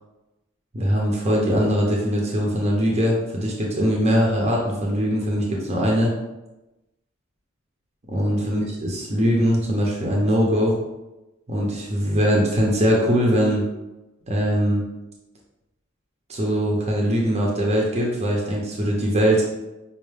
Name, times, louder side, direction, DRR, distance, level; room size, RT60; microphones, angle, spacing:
voice 1, 0.7-6.1 8.1-10.8 11.5-13.6 14.3-14.8 16.3-19.4, equal, 30° right, -2 dB, 0.7 m, -21 dB
5.3 x 2.0 x 3.3 m, 1.0 s
head